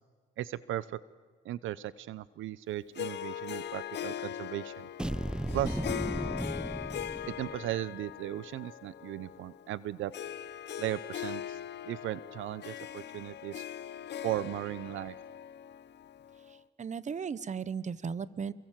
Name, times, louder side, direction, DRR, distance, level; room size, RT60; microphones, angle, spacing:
voice 1, 0.4-1.0 1.4-4.9 5.5-5.8 7.3-10.1 10.8-11.6 11.8-13.6 14.2-15.2, right 13 dB, 80° right, 18 dB, 0.7 m, -36 dB
Harp, 2.9-16.6, left 10 dB, 60° left, 0.9 m, -41 dB
sound 1, 5.0-7.8, right 1 dB, 5° right, 0.7 m, -35 dB
voice 2, 16.5-18.5, right 6 dB, 35° right, 17 dB, 1.1 m, -36 dB
28.0 x 23.0 x 7.5 m, 1.6 s
cardioid pair, 90°, 20 cm